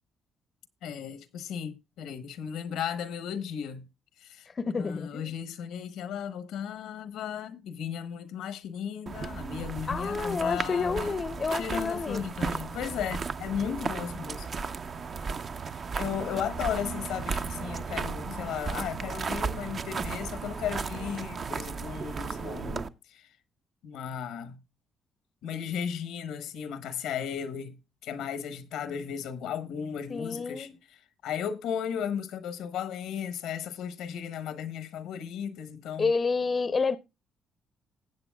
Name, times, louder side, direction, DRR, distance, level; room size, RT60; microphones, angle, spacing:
voice 1, 0.8-3.9 4.2-4.5 4.8-11.2 11.5-14.6 16.0-23.3 23.8-24.6 25.4-30.7 31.2-36.1, left 8 dB, 90° left, 1.1 m, -35 dB
voice 2, 4.5-5.3 9.9-12.2 30.1-30.7 36.0-37.0, left 4 dB, 35° left, 0.6 m, -29 dB
sound 1, 9.1-22.9, right 5 dB, 45° right, 0.7 m, -35 dB
19.5 x 7.8 x 2.3 m
cardioid pair, 90°, 0 cm